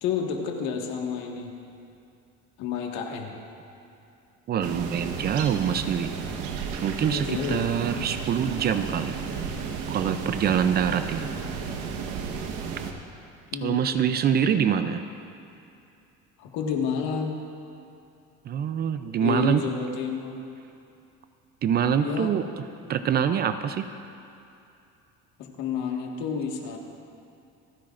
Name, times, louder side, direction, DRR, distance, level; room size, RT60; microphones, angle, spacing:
voice 1, 0.0-1.5 2.6-3.4 7.1-7.7 11.2-11.8 13.5-14.1 16.4-17.4 19.2-20.4 22.0-22.3 25.4-26.8, left 6 dB, 75° left, 1 dB, 1.8 m, -30 dB
voice 2, 4.5-6.1 6.8-9.2 9.9-11.3 13.6-15.0 18.5-19.6 21.6-22.5 22.9-23.9, right 8 dB, 35° right, 10 dB, 0.4 m, -25 dB
sound 1, 4.6-12.9, right 6 dB, 85° right, 1.2 m, -33 dB
28.0 x 10.0 x 2.5 m, 2.7 s
cardioid pair, 150°, 30 cm